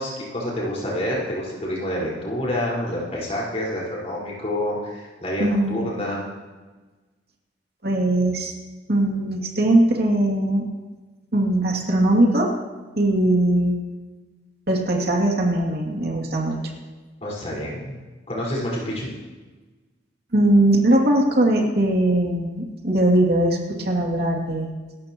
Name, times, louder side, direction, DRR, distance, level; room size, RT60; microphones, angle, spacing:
voice 1, 0.0-6.2 17.2-18.0 18.3-19.1, left 1 dB, 35° left, -5 dB, 4.9 m, -28 dB
voice 2, 5.4-6.2 7.8-8.5 8.9-10.6 11.3-12.5 13.0-13.7 14.7-16.7 20.3-24.7, right 1 dB, 55° right, -1 dB, 2.7 m, -20 dB
26.5 x 13.5 x 3.0 m, 1.3 s
head